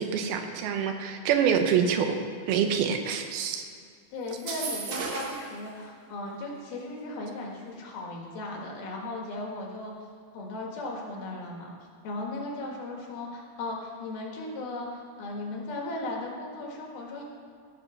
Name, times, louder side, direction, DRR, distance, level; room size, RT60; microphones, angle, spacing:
voice 1, 0.0-2.2 2.5-3.6, right 7 dB, 85° right, 6 dB, 2.8 m, -26 dB
voice 2, 4.1-9.9 10.3-11.7 12.0-17.2, left 2 dB, 80° left, -1 dB, 3.5 m, -36 dB
sound 1, 4.3-5.5, right 4 dB, 60° right, 2.1 m, -34 dB
14.5 x 5.4 x 6.4 m, 2.2 s
omnidirectional pair, 4.3 m